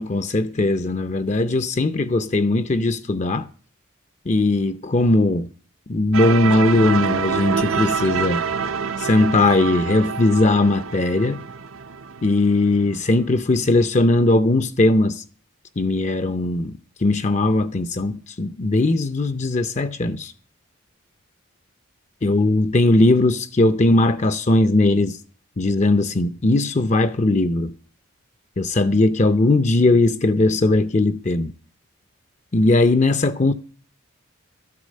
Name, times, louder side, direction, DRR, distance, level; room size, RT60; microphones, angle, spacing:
voice 1, 0.0-3.5 4.3-5.5 5.9-8.4 9.0-11.4 12.2-15.2 15.8-20.3 22.2-25.2 25.6-27.7 28.6-31.5 32.5-33.5, left 2 dB, 30° left, 0.6 m, -19 dB
sound 1, 6.1-12.9, right 6 dB, 75° right, 0.8 m, -26 dB
13.0 x 8.5 x 6.5 m
head